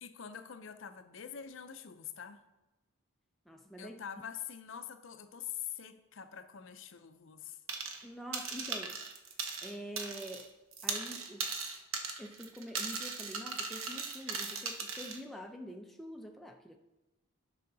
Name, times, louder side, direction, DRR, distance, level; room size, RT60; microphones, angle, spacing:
voice 1, 0.0-2.4 3.8-7.6, left 9 dB, 70° left, 0.6 m, -45 dB
voice 2, 3.5-4.0 8.0-9.0 9.6-10.5 10.8-11.5 12.2-16.8, equal, ahead, 0.4 m, -46 dB
sound 1, 7.7-8.0 8.3-10.5 10.7-15.2, right 5 dB, 80° right, 0.9 m, -38 dB
9.3 x 5.6 x 3.9 m
head